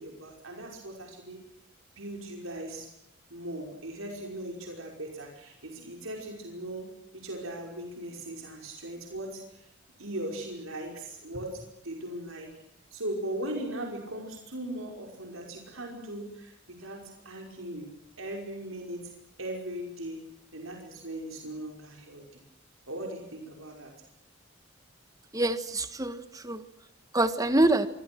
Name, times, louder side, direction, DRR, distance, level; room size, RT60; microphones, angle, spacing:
voice 1, 0.0-1.4 2.0-2.9 3.3-9.7 10.0-12.5 12.9-17.9 18.2-19.1 19.4-22.4 22.9-23.9, right 1 dB, 90° right, 1 dB, 5.5 m, -39 dB
voice 2, 25.3-26.6 27.1-27.9, right 2 dB, 15° right, 10 dB, 1.6 m, -25 dB
27.5 x 25.0 x 6.2 m, 0.75 s
head